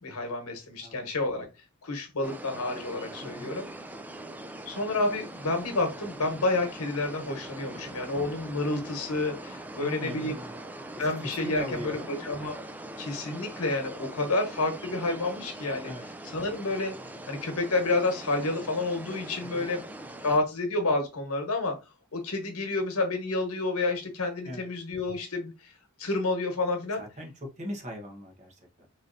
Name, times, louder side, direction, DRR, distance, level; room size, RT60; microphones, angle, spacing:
voice 1, 0.0-1.5 1.8-3.7 4.7-10.3 11.0-12.6 13.0-15.9 16.3-16.9 17.3-19.8 20.2-21.8 22.1-25.7 26.0-27.0, left 2 dB, 85° left, 4 dB, 1.2 m, -29 dB
sound 1, 2.2-20.4, right 1 dB, 10° right, 0.3 m, -42 dB
voice 2, 3.2-3.5 9.8-10.6 10.9-12.1 15.8-16.1 19.4-19.7 24.4-24.7 27.0-28.9, left 1 dB, 35° right, 1 dB, 1.1 m, -40 dB
4.0 x 3.2 x 2.6 m, 0.26 s
head